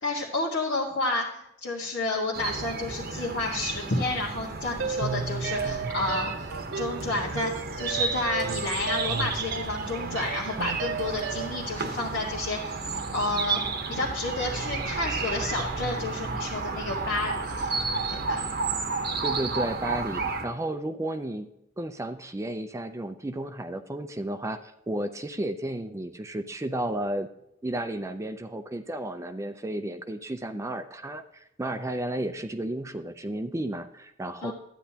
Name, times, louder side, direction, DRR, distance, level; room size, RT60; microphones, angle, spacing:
voice 1, 0.0-6.3 6.8-7.5 7.8-12.8 13.1-13.6 13.9-17.7 18.1-18.4 34.4-34.5, left 2 dB, 80° left, -5 dB, 1.5 m, -30 dB
sound 1, 2.3-20.5, right 4 dB, 55° right, 0.9 m, -32 dB
sound 2, 4.8-11.7, right 5 dB, 80° right, 0.6 m, -34 dB
voice 2, 19.2-21.5 21.8-27.3 27.6-34.5, right 1 dB, 15° right, 9 dB, 0.5 m, -33 dB
12.0 x 9.1 x 2.8 m, 0.81 s
head